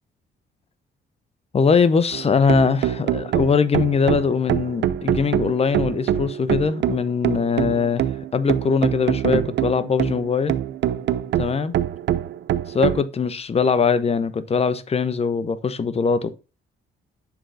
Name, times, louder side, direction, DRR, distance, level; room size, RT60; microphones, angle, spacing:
voice 1, 1.5-8.0 8.3-10.6 11.3-11.7 12.7-16.4, left 5 dB, 30° left, 0.6 m, -21 dB
sound 1, 2.1-13.0, right 11 dB, 65° right, 0.5 m, -24 dB
7.1 x 3.8 x 3.9 m
cardioid pair, 90°, 20 cm